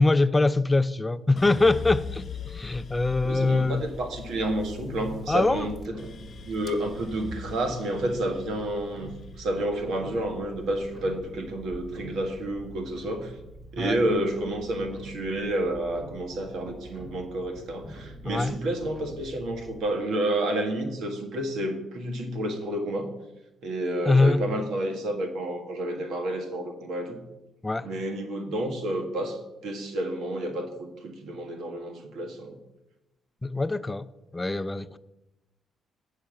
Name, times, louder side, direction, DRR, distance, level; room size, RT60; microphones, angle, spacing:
voice 1, 0.0-3.8 5.3-5.7 13.8-14.0 17.8-17.9 18.2-18.6 24.0-24.4 27.6-27.9 33.4-34.1 34.3-35.0, left 3 dB, 15° left, 0.4 m, -23 dB
sound 1, 1.4-11.6 12.0-12.8, left 5 dB, 45° left, 0.7 m, -41 dB
voice 2, 3.2-9.1 9.4-13.3 13.7-23.1 23.6-27.2 27.8-32.6, right 1 dB, 80° right, 1.5 m, -30 dB
Tick-tock, 4.6-19.8, right 1 dB, 45° right, 2.9 m, -46 dB
8.3 x 5.8 x 6.5 m
cardioid pair, 90°, 0 cm